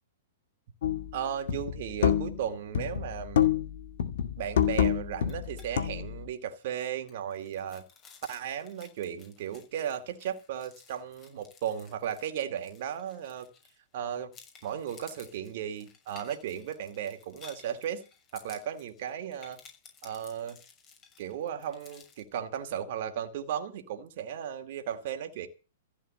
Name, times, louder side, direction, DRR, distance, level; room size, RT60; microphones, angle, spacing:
sound 1, 0.8-1.1 1.5-2.5 2.7-3.7 4.0-6.2, left 10 dB, 70° left, 2.0 m, -27 dB
voice 1, 1.1-3.5 4.4-7.8 8.3-13.5 13.9-14.3 14.6-18.0 18.3-19.6 20.0-20.6 21.2-25.5, right 9 dB, 60° right, 2.4 m, -35 dB
sound 2, 5.2-5.7 6.0-6.1 6.5-14.0 14.3-22.2, left 6 dB, 30° left, 6.6 m, -55 dB
15.0 x 8.5 x 7.6 m
hypercardioid pair, 125°, 0 cm